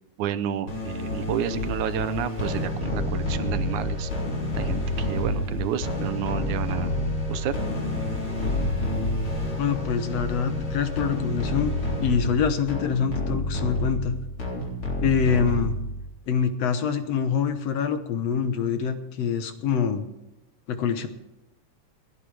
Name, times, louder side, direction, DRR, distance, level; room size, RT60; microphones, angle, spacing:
voice 1, 0.2-4.1 4.6-6.9 7.3-7.5, right 10 dB, 85° right, 12 dB, 2.3 m, -30 dB
sound 1, 0.7-16.1, left 1 dB, 45° left, 4.5 m, -28 dB
voice 2, 9.6-11.7 12.0-14.2 15.0-15.8 16.3-20.1 20.7-21.1, left 7 dB, 65° left, 8 dB, 2.1 m, -25 dB
29.5 x 10.0 x 3.4 m, 0.94 s
omnidirectional pair, 3.4 m